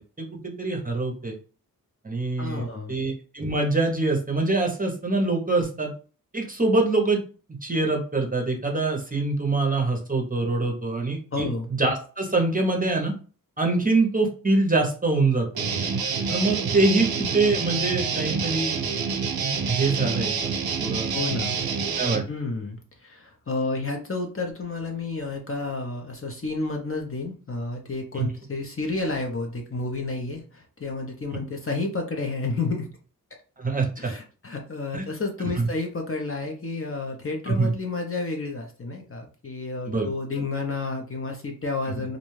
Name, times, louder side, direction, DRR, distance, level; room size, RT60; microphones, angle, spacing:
voice 1, 0.2-1.4 2.0-5.9 6.3-7.2 7.6-13.1 13.6-15.5 16.3-18.8 19.4-21.1 22.0-22.2 28.2-28.3 33.6-34.1 34.9-35.0 37.5-37.7 39.9-40.1, right 3 dB, 25° right, 1 dB, 0.6 m, -24 dB
voice 2, 2.4-3.0 11.3-11.7 16.6-16.7 21.1-21.6 22.3-32.9 34.0-42.2, left 3 dB, 40° left, 2 dB, 0.6 m, -31 dB
Guitar, 15.5-22.3, right 5 dB, 85° right, 0.5 m, -27 dB
2.5 x 2.2 x 3.1 m, 0.38 s
wide cardioid pair, 80°, 36 cm